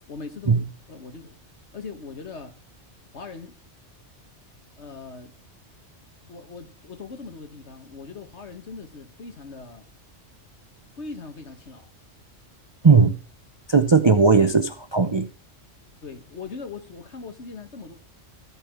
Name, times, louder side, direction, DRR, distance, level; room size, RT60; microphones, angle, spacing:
voice 1, 0.1-0.6 0.9-1.4 1.7-2.6 3.1-3.5 4.8-5.3 6.3-9.8 11.0-11.9 14.4-14.5 16.0-17.9, left 4 dB, 65° left, 1.9 m, -40 dB
voice 2, 12.8-13.2 13.7-15.3, right 5 dB, 30° right, 0.5 m, -17 dB
14.0 x 5.6 x 6.1 m
omnidirectional pair, 1.2 m